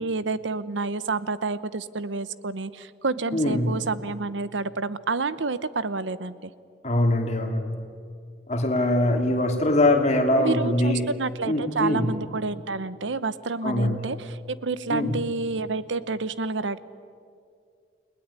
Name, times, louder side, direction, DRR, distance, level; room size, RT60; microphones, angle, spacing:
voice 1, 0.0-6.5 10.4-16.8, right 3 dB, 85° right, 15 dB, 0.9 m, -29 dB
voice 2, 3.3-3.8 6.8-7.8 8.5-11.1 11.4-12.1 13.6-14.0 14.9-15.1, left 1 dB, 40° left, 4 dB, 2.7 m, -22 dB
30.0 x 19.0 x 9.8 m, 2.3 s
head